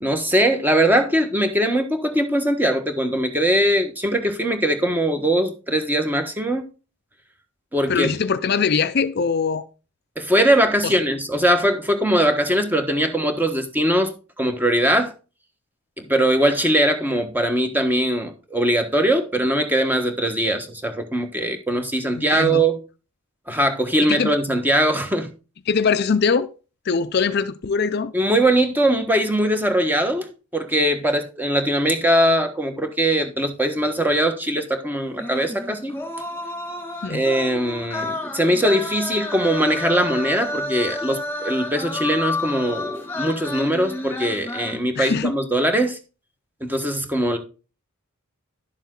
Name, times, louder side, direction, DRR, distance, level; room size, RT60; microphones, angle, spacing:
voice 1, 0.0-6.7 7.7-8.1 10.2-15.1 16.0-22.8 23.5-25.3 28.1-35.9 37.1-46.0 46.6-47.4, right 1 dB, 10° right, 1.3 m, -21 dB
voice 2, 7.9-9.7 10.8-10.9 22.2-22.6 24.0-24.3 25.7-26.5 26.9-28.1 37.0-37.2 45.0-45.3, left 5 dB, 50° left, 0.5 m, -22 dB
sound 1, 35.2-44.8, left 2 dB, 10° left, 2.3 m, -30 dB
11.5 x 7.2 x 3.8 m
head